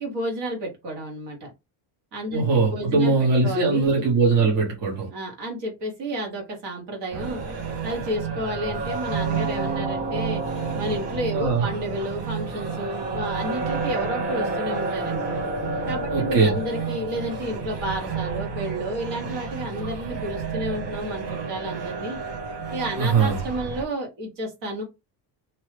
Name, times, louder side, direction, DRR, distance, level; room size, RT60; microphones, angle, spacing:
voice 1, 0.0-1.5 2.1-2.4 2.7-3.9 5.1-7.4 7.8-10.4 10.7-15.4 15.9-22.2 22.7-24.8, right 1 dB, 70° right, 1.4 m, -31 dB
voice 2, 2.3-5.1 11.3-11.7 16.1-16.6 23.0-23.4, right 4 dB, 55° right, 1.1 m, -21 dB
sound 1, 7.1-23.8, right 4 dB, 85° right, 1.2 m, -30 dB
2.8 x 2.3 x 3.2 m
cardioid pair, 180°, 41 cm